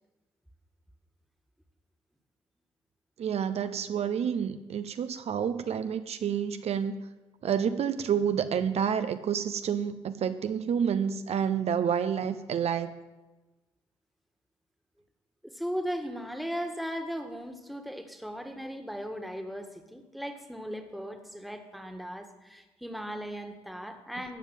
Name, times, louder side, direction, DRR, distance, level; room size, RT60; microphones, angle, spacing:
voice 1, 3.2-7.0 7.4-12.9, right 8 dB, 70° right, 10 dB, 0.7 m, -29 dB
voice 2, 15.4-24.4, equal, ahead, 5 dB, 1.7 m, -37 dB
13.5 x 5.5 x 9.1 m, 1.1 s
cardioid pair, 65°, 11 cm